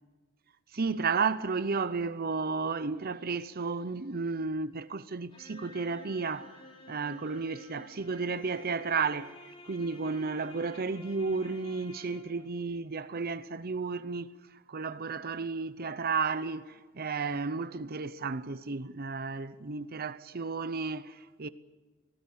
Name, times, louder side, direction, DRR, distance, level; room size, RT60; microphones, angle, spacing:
voice 1, 0.7-6.6 6.9-9.4 9.6-14.3 14.7-21.5, right 4 dB, 45° right, 0.8 m, -33 dB
sound 1, 5.3-12.6, left 1 dB, 25° left, 3.2 m, -51 dB
25.5 x 18.0 x 8.6 m
head